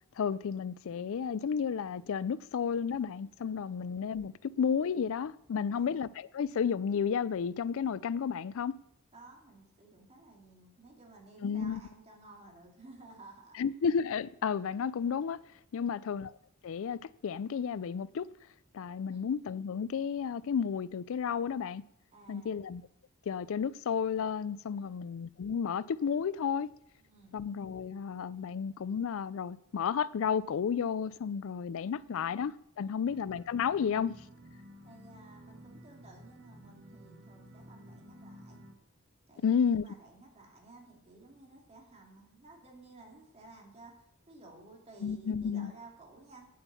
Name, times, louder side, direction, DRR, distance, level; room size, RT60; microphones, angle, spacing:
voice 1, 0.2-8.8 11.4-11.8 13.6-15.4 15.7-16.3 16.6-18.3 18.7-21.8 22.3-22.8 23.3-26.7 27.3-32.5 32.8-34.1 39.4-39.8 45.0-45.7, left 7 dB, 65° left, 0.4 m, -32 dB
voice 2, 3.6-3.9 5.7-6.1 9.1-13.6 15.7-16.1 18.9-19.2 22.1-22.6 24.8-25.0 26.9-27.4 32.0-32.3 32.8-33.2 34.8-38.6 39.3-46.5, right 2 dB, 30° right, 2.8 m, -55 dB
sound 1, 33.1-38.7, equal, 60° right, 2.0 m, -53 dB
8.9 x 8.6 x 7.0 m
head